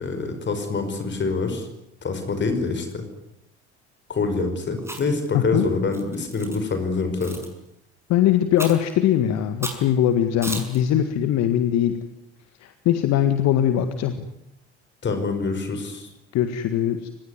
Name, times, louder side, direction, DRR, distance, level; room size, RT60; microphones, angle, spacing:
voice 1, 0.0-1.7 2.0-3.0 4.1-7.4 15.0-16.1, left 4 dB, 35° left, 7 dB, 5.3 m, -26 dB
Chewing mastication, 4.8-5.3 5.9-6.6 7.2-7.5 8.6-8.9 9.6-9.9 10.4-10.8, right 1 dB, 10° right, 6.3 m, -33 dB
voice 2, 5.3-5.7 8.1-12.0 12.6-14.3 16.3-17.1, left 10 dB, 50° left, 10 dB, 1.8 m, -21 dB
25.0 x 20.0 x 9.7 m, 0.83 s
figure-of-eight pair, 60°, 33 cm